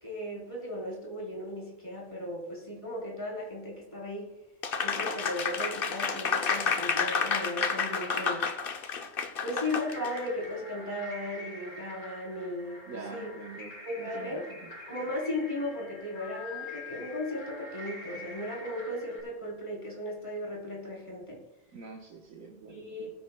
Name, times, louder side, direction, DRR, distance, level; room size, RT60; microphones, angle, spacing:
voice 1, 0.0-4.3 4.8-8.5 9.4-13.3 13.8-14.4 14.9-21.4 22.7-23.1, left 1 dB, 25° left, -4 dB, 3.8 m, -36 dB
Applause, 4.6-10.2, left 5 dB, 50° left, 0.9 m, -30 dB
sound 1, 9.6-19.2, left 2 dB, 70° left, 2.1 m, -45 dB
voice 2, 12.8-13.7 14.0-14.7 21.7-23.1, right 4 dB, 80° right, 0 dB, 1.4 m, -45 dB
20.0 x 9.3 x 2.2 m, 1.1 s
omnidirectional pair, 1.4 m